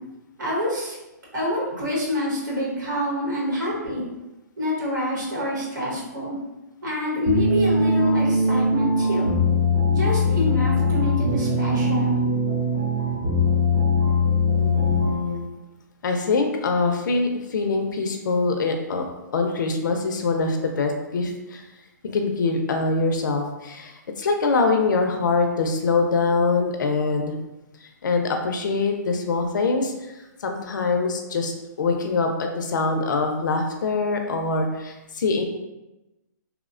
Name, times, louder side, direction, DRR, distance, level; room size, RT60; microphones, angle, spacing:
voice 1, 0.4-0.9 1.3-4.0 4.6-6.4 6.8-9.3 9.9-12.1, left 1 dB, 80° right, -5 dB, 1.1 m, -26 dB
sound 1, 7.2-15.3, left 2 dB, 25° right, 0.4 m, -21 dB
voice 2, 14.6-15.5 16.0-19.0 19.3-21.7 22.0-27.4 27.8-31.5 31.8-35.4, left 3 dB, 80° left, 4 dB, 0.4 m, -24 dB
2.9 x 2.0 x 2.4 m, 1.0 s
hypercardioid pair, 165°, 10 cm